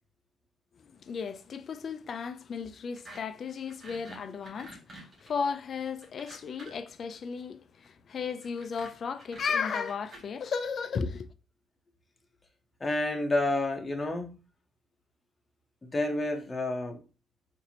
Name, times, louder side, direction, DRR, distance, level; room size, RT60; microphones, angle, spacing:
voice 1, 0.7-11.3, left 5 dB, 50° left, 0.3 m, -35 dB
sound 1, 3.0-3.2 3.5-6.9 8.4-10.2, right 2 dB, 45° right, 2.0 m, -48 dB
voice 2, 12.8-14.4 15.8-17.0, left 2 dB, 25° left, 0.7 m, -29 dB
4.2 x 2.5 x 2.8 m
cardioid pair, 90°, 0 cm